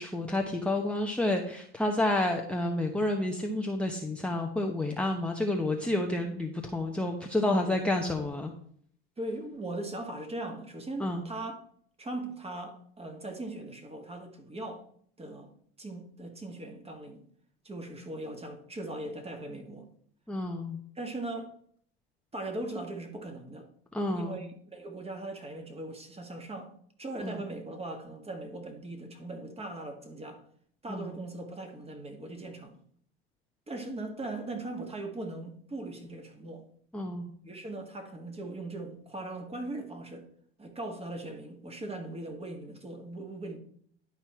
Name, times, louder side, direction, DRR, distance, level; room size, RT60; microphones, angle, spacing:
voice 1, 0.0-8.5 11.0-11.2 20.3-20.8 23.9-24.4 27.2-27.4 30.9-31.1 36.9-37.3, left 1 dB, 5° left, 0.9 m, -30 dB
voice 2, 7.4-7.8 9.2-11.6 12.0-14.8 15.2-15.5 15.8-17.2 17.6-19.9 20.9-21.5 22.3-23.7 24.1-26.7 27.0-30.4 30.8-32.8 33.7-36.6 37.4-40.3 40.6-43.6, right 2 dB, 20° right, 1.7 m, -39 dB
11.0 x 4.5 x 4.4 m
hypercardioid pair, 90°, 32 cm